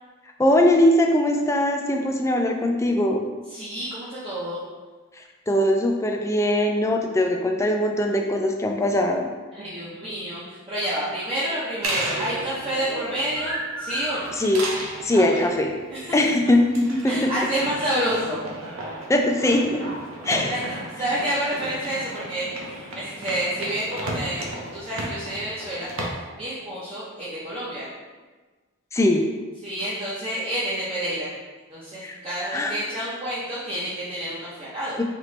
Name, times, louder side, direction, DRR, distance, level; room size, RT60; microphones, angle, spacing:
voice 1, 0.4-3.2 5.5-9.3 14.4-14.6 15.0-15.7 16.1-17.2 19.1-19.8 20.2-20.5 28.9-29.3 32.0-32.2 32.5-32.7 35.0-35.1, left 1 dB, 15° left, 2 dB, 0.3 m, -21 dB
voice 2, 3.5-4.6 9.5-14.3 15.1-15.5 15.9-16.2 17.1-18.4 20.2-25.9 26.4-27.9 29.6-31.3 31.7-35.0, right 1 dB, 25° right, -9 dB, 0.7 m, -29 dB
sound 1, 11.8-26.1, right 1 dB, 75° right, 0.7 m, -34 dB
4.1 x 3.1 x 3.1 m, 1.3 s
head